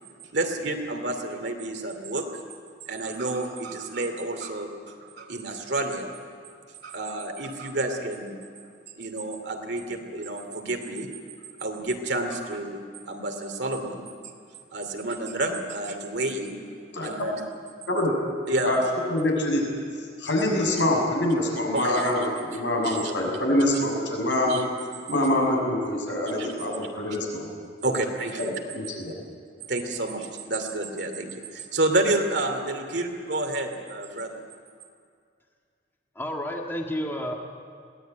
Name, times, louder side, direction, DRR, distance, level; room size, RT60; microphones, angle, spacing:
voice 1, 0.3-2.2 2.9-6.2 6.8-8.3 9.0-11.1 11.6-12.8 13.1-14.1 14.7-16.6 17.0-17.4 18.5-18.8 21.7-22.0 22.8-23.1 24.5-24.6 26.4-26.5 27.8-28.5 29.7-34.4, right 2 dB, 65° right, 4 dB, 2.7 m, -29 dB
voice 2, 19.1-19.6 20.2-24.6 25.1-27.4 28.7-29.1, left 1 dB, 80° left, 0 dB, 6.4 m, -25 dB
voice 3, 36.1-37.3, equal, 10° left, 0 dB, 1.7 m, -30 dB
22.0 x 17.5 x 9.1 m, 2.2 s
head